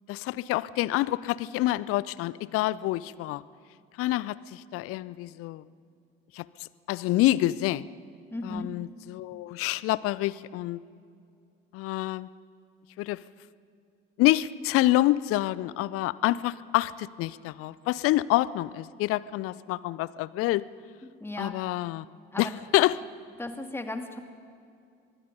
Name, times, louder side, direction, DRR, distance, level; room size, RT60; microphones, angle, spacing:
voice 1, 0.1-3.4 4.0-5.6 6.3-7.9 8.4-10.8 11.7-12.3 13.0-13.2 14.2-20.6 21.4-22.1 22.4-23.0, left 16 dB, 45° left, 20 dB, 0.7 m, -27 dB
voice 2, 8.3-8.7 21.0-21.5 22.3-22.6 23.4-24.2, left 2 dB, 10° left, 6 dB, 2.2 m, -36 dB
24.5 x 21.5 x 5.4 m, 2.4 s
figure-of-eight pair, 60°, 31 cm